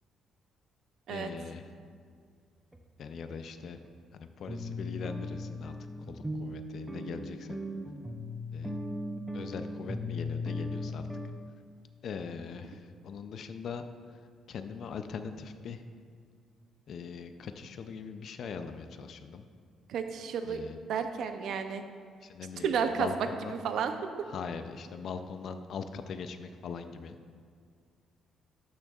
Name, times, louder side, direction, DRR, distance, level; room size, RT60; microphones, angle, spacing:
voice 1, 1.1-1.7 3.0-3.8 4.1-5.8 6.1-7.5 8.5-8.8 9.3-11.0 12.0-13.8 14.5-15.8 16.9-19.4 20.4-20.8 22.2-23.6 24.3-27.2, left 6 dB, 50° left, 8 dB, 0.4 m, -41 dB
sound 1, 2.7-2.8 3.3-3.4 3.8-3.9 4.5-11.3, left 2 dB, 10° right, 0.5 m, -37 dB
voice 2, 19.9-20.6 20.9-21.8 22.6-23.9, right 6 dB, 65° right, 7 dB, 0.5 m, -31 dB
12.5 x 6.3 x 2.4 m, 2.1 s
cardioid pair, 160°, 0 cm